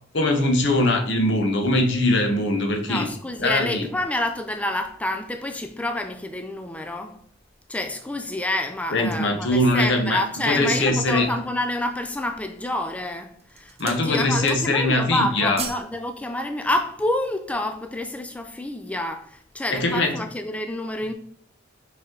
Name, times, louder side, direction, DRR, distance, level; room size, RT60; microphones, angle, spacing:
voice 1, 0.1-3.1 3.4-3.9 8.9-11.3 13.8-15.6 19.7-20.1, left 1 dB, 65° left, 1.2 m, -21 dB
voice 2, 2.9-7.2 7.7-21.1, left 1 dB, 5° left, 0.4 m, -28 dB
sound 1, 9.4-10.2 10.8-10.9 11.3-11.9 12.6-13.0 13.3-14.1 14.3-14.9 15.2-15.9 16.2-16.4, right 6 dB, 35° right, 1.1 m, -38 dB
5.7 x 5.3 x 3.8 m
head